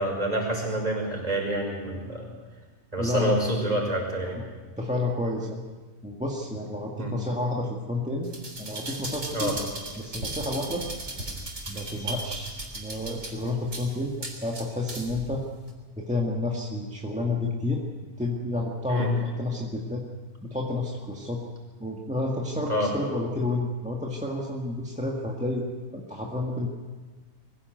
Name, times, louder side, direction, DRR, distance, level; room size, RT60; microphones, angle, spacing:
voice 1, 0.0-2.3 2.9-4.4 7.0-7.2 9.3-9.5 18.9-19.1 22.7-22.9, right 1 dB, 25° right, -1 dB, 6.0 m, -27 dB
voice 2, 3.0-3.4 4.3-4.4 4.8-5.6 6.0-8.3 8.6-9.5 10.0-10.8 11.6-15.4 16.0-17.8 18.2-20.0 20.4-21.4 21.8-25.6 25.9-26.7, left 2 dB, 5° right, -1 dB, 1.8 m, -30 dB
sound 1, 8.2-15.2 15.7-15.8, right 2 dB, 50° right, 3.9 m, -37 dB
23.0 x 16.0 x 7.9 m, 1.4 s
omnidirectional pair, 1.5 m